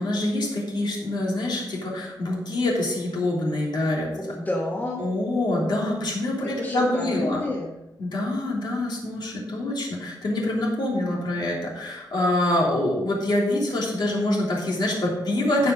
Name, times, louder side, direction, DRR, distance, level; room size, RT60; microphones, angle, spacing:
voice 1, 0.0-4.1 5.0-7.4 8.0-15.7, left 1 dB, 75° left, -3 dB, 3.3 m, -25 dB
voice 2, 4.2-5.0 6.4-7.7, left 1 dB, 25° left, -2 dB, 1.5 m, -29 dB
16.0 x 5.6 x 4.0 m, 0.96 s
wide cardioid pair, 175°, 8 cm